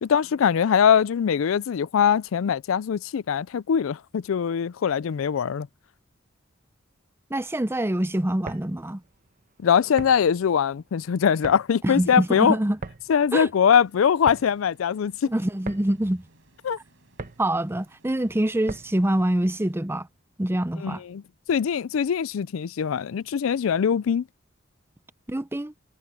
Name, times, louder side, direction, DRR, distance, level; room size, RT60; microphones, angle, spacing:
voice 1, 0.0-5.7 9.6-12.6 13.1-15.3 16.6-16.8 20.8-21.2 21.5-24.2, left 7 dB, 85° left, 0.4 m, -22 dB
voice 2, 7.3-9.0 11.8-12.8 13.3-13.5 15.3-16.2 17.4-20.1 20.4-21.0 25.3-25.7, right 1 dB, 10° right, 0.6 m, -25 dB
sound 1, 8.2-19.1, right 3 dB, 40° right, 1.3 m, -42 dB
sound 2, 13.8-20.5, right 1 dB, 70° right, 7.1 m, -61 dB
head